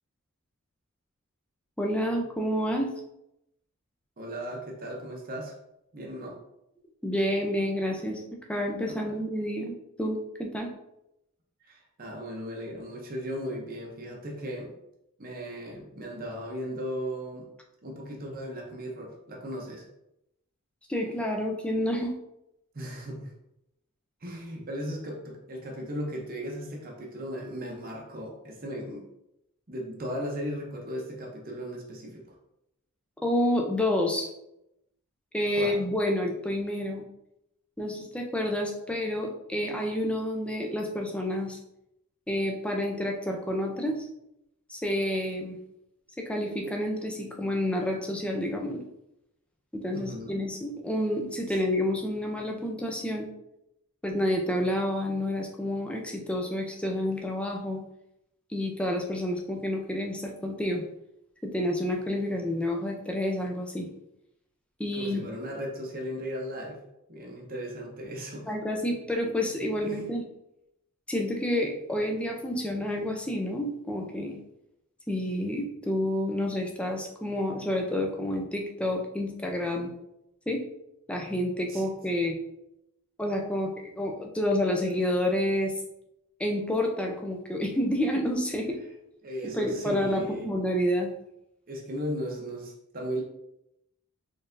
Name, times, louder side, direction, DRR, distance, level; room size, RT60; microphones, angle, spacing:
voice 1, 1.8-2.9 7.0-8.2 8.5-10.7 20.9-22.1 33.2-34.3 35.3-37.0 37.8-41.6 42.3-44.1 44.7-45.6 46.2-48.8 49.7-53.3 54.0-57.8 58.5-60.8 61.4-63.9 64.8-65.3 68.5-70.2 71.1-74.3 75.1-79.9 80.5-80.6 81.1-82.4 83.2-85.7 86.4-88.8 89.4-91.1, left 1 dB, 5° left, 1 dB, 0.5 m, -29 dB
voice 2, 4.2-5.5 5.9-6.4 8.9-9.1 11.6-14.7 15.2-17.5 17.8-19.8 22.7-23.3 24.2-29.1 29.7-32.4 35.5-35.8 49.9-50.3 51.5-51.6 64.9-66.8 67.1-68.5 69.8-70.0 81.7-81.9 89.2-90.5 91.7-93.2, equal, 40° right, -1 dB, 0.7 m, -36 dB
4.2 x 3.2 x 2.6 m, 0.84 s
head